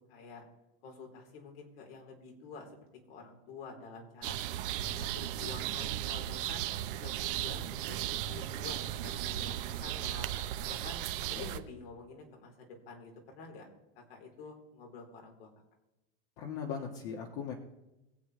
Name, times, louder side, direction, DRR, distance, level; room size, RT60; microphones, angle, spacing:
voice 1, 0.1-0.4 0.8-2.7 3.1-4.4 4.8-6.6 6.9-11.0 11.4-13.7 13.9-15.5, left 4 dB, 80° left, 0 dB, 4.1 m, -48 dB
sound 1, 4.2-11.6, right 12 dB, 65° right, 1.0 m, -36 dB
voice 2, 16.4-17.5, left 6 dB, 50° left, 0 dB, 1.6 m, -38 dB
23.0 x 8.1 x 3.3 m, 0.96 s
supercardioid pair, 145°, 29 cm